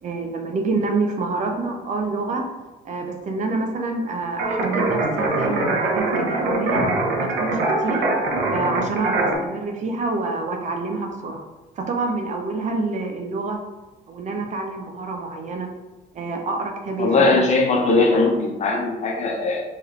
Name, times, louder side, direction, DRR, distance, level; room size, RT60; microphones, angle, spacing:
voice 1, 0.0-2.5 2.8-6.8 7.2-8.1 8.5-11.4 11.8-13.6 14.1-15.7 16.1-17.4, right 3 dB, 45° right, 3 dB, 0.8 m, -27 dB
sound 1, 4.4-9.4, right 2 dB, 80° right, 0.9 m, -23 dB
voice 2, 17.0-19.6, left 3 dB, 45° left, 1 dB, 0.9 m, -19 dB
4.5 x 3.2 x 3.2 m, 1.2 s
cardioid pair, 110°, 17 cm